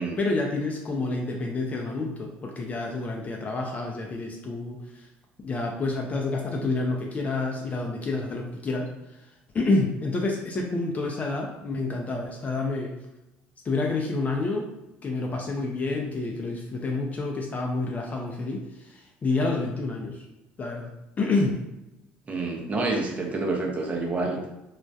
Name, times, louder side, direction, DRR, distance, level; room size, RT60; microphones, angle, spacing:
voice 1, 0.0-5.1 5.4-9.3 9.5-12.9 13.6-14.7 15.0-20.2 20.6-20.9 21.2-21.6 24.2-24.5, left 3 dB, 30° left, 0 dB, 0.4 m, -29 dB
voice 2, 22.3-24.5, right 3 dB, 30° right, 1 dB, 0.6 m, -28 dB
2.3 x 2.1 x 2.6 m, 0.95 s
supercardioid pair, 80°, 5 cm